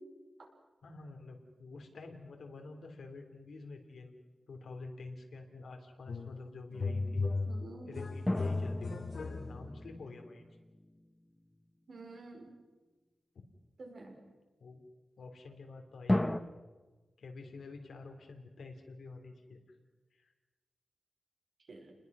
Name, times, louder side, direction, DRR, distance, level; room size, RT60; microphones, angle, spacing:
voice 1, 0.8-4.1 4.5-7.2 7.9-10.5 14.6-14.9 15.2-16.4 17.2-19.6 20.1-20.3, left 3 dB, 85° left, 4 dB, 3.0 m, -48 dB
sound 1, 6.1-6.4 6.7-9.8, left 3 dB, 65° left, 2.5 m, -36 dB
voice 2, 6.8-8.0 11.9-12.5 13.8-14.2 21.7-21.9, right 2 dB, 60° right, 1 dB, 5.3 m, -49 dB
sound 2, 8.3-11.2 16.1-16.4, left 1 dB, 10° left, 0.9 m, -35 dB
28.5 x 20.5 x 6.1 m, 1.3 s
wide cardioid pair, 125°, 0 cm